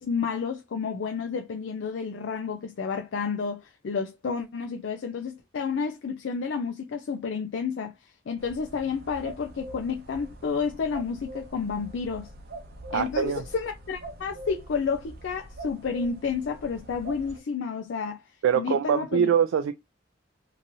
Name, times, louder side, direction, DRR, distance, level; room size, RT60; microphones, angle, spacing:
voice 1, 0.0-7.9 8.3-12.3 12.9-18.2 18.5-19.3, left 5 dB, 65° left, 0.4 m, -30 dB
sound 1, 8.4-17.4, right 1 dB, 55° right, 0.6 m, -44 dB
voice 2, 12.9-13.4 18.4-19.8, right 8 dB, 85° right, 0.3 m, -23 dB
2.9 x 2.6 x 2.5 m
head